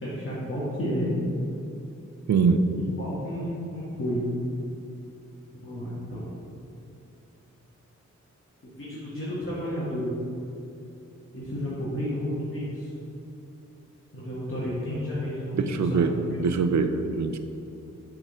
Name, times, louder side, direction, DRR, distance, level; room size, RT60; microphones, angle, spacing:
voice 1, 0.0-1.2 3.0-4.2 5.5-6.3 8.6-10.1 11.3-12.9 14.1-16.4, equal, 45° left, -9 dB, 1.6 m, -31 dB
voice 2, 2.3-2.6 15.5-16.1 16.4-17.4, right 5 dB, 65° right, 8 dB, 0.6 m, -23 dB
6.1 x 3.8 x 6.2 m, 2.7 s
cardioid pair, 55°, 30 cm